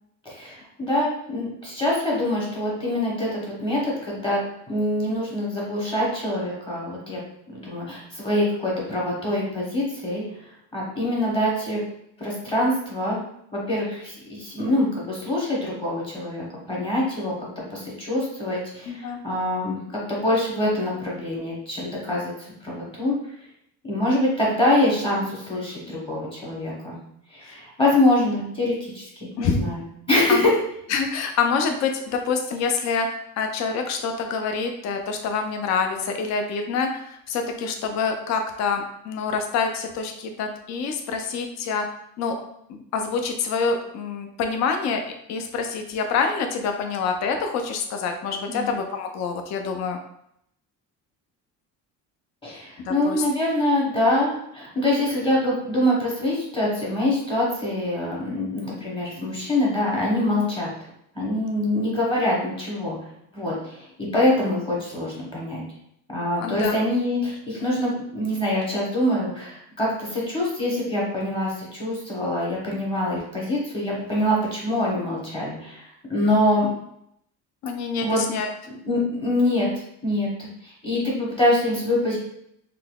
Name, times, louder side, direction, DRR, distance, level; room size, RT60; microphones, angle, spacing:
voice 1, 0.2-4.4 4.7-7.2 7.5-10.2 10.7-11.8 12.2-13.2 13.7-17.3 17.7-19.8 20.1-22.3 22.6-23.2 23.8-27.0 27.3-29.8 30.1-30.5 48.5-48.7 52.4-60.7 61.1-63.0 63.3-63.9 64.1-65.6 66.1-76.7 78.0-78.2 78.7-79.7 80.0-82.2, left 1 dB, 15° left, -4 dB, 1.0 m, -24 dB
voice 2, 18.9-19.2 27.4-27.5 29.4-29.6 30.3-30.5 30.9-41.9 42.2-42.3 42.7-45.0 45.3-50.0 52.9-53.2 66.4-66.8 77.6-78.5, left 5 dB, 50° left, 5 dB, 0.4 m, -26 dB
3.8 x 2.7 x 2.3 m, 0.74 s
cardioid pair, 160°, 36 cm